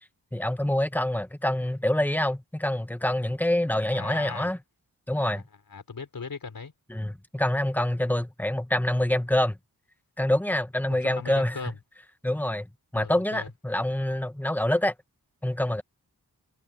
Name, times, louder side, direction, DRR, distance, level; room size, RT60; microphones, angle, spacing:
voice 1, 0.3-4.6 5.1-5.4 6.9-9.6 10.2-11.6 12.2-12.7 12.9-14.9 15.4-15.8, left 1 dB, 5° left, 1.3 m, -26 dB
voice 2, 3.9-4.5 5.3-5.4 5.7-6.7 10.9-11.8 12.9-13.5, left 5 dB, 70° left, 4.5 m, -38 dB
wide cardioid pair, 75°, 36 cm